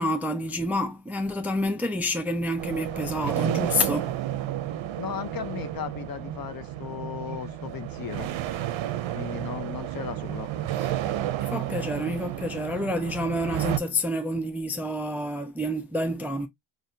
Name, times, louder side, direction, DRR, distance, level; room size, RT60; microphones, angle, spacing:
voice 1, 0.0-4.2 11.5-16.5, left 1 dB, 5° right, 0.3 m, -28 dB
sound 1, 2.6-13.8, right 12 dB, 80° right, 0.6 m, -31 dB
voice 2, 5.0-8.3 9.1-10.5, left 9 dB, 50° left, 0.6 m, -36 dB
5.0 x 2.5 x 2.7 m
wide cardioid pair, 140°, 46 cm